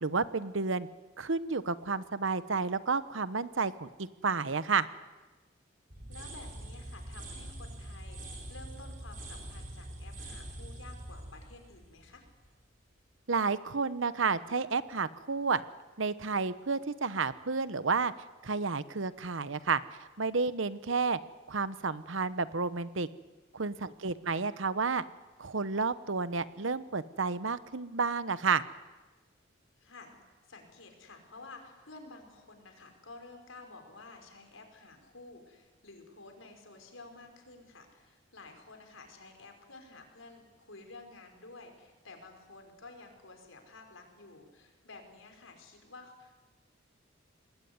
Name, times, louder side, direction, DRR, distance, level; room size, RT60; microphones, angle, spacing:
voice 1, 0.0-0.9 1.2-4.9 13.3-15.6 16.0-18.1 18.4-19.8 20.2-21.2 21.5-23.1 23.5-25.0 25.4-28.6, right 4 dB, 70° right, 14 dB, 1.0 m, -31 dB
sound 1, 5.9-12.8, right 1 dB, 40° right, 5.0 m, -44 dB
voice 2, 6.1-12.3 23.8-24.2 29.7-30.2 30.5-46.3, left 3 dB, 80° left, 5 dB, 5.3 m, -52 dB
26.5 x 20.5 x 9.7 m, 1.3 s
head